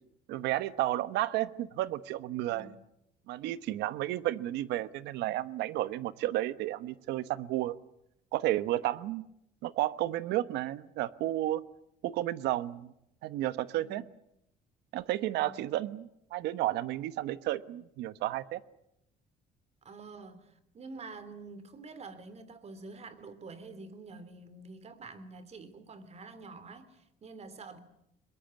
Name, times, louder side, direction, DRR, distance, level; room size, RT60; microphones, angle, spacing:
voice 1, 0.3-2.7 3.3-7.8 8.3-9.2 9.6-11.6 12.0-12.9 13.2-14.0 14.9-18.6, right 15 dB, 85° right, 1.1 m, -32 dB
voice 2, 2.5-2.8 13.7-14.0 15.4-15.6 19.8-27.8, right 3 dB, 40° right, 3.2 m, -47 dB
22.5 x 21.5 x 9.6 m
cardioid pair, 110°, 17 cm